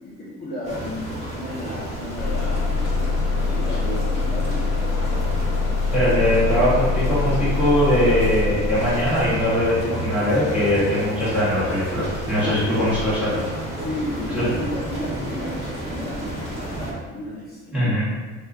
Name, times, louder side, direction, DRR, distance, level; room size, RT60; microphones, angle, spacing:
voice 1, 0.0-4.6 13.6-18.0, left 1 dB, 30° left, -9 dB, 0.8 m, -34 dB
sound 1, 0.6-16.9, right 1 dB, 20° right, 1.1 m, -32 dB
Bus / Engine starting, 2.2-9.9, left 3 dB, 55° left, 0.4 m, -24 dB
voice 2, 5.9-13.5 14.3-14.4 17.7-18.0, left 1 dB, 5° right, -11 dB, 1.3 m, -21 dB
2.7 x 2.5 x 3.4 m, 1.4 s
cardioid pair, 125°, 30 cm